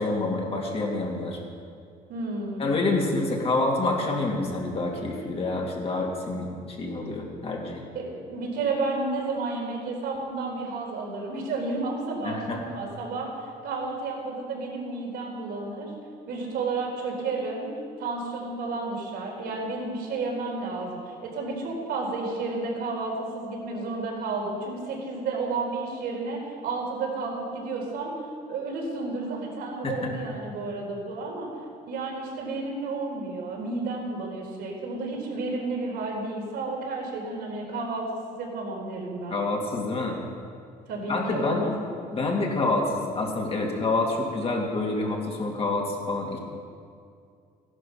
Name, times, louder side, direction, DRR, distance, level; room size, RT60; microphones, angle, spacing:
voice 1, 0.0-1.4 2.6-7.8 12.2-12.6 29.8-30.1 39.3-40.2 41.1-41.8 42.1-46.4, left 2 dB, 35° left, -1 dB, 2.7 m, -27 dB
voice 2, 2.1-2.8 7.9-13.3 13.6-15.9 16.3-17.7 18.0-28.1 28.5-31.5 31.9-39.4 40.9-41.7, right 3 dB, 75° right, -2 dB, 4.1 m, -31 dB
14.5 x 11.5 x 5.7 m, 2.4 s
cardioid pair, 110°, 17 cm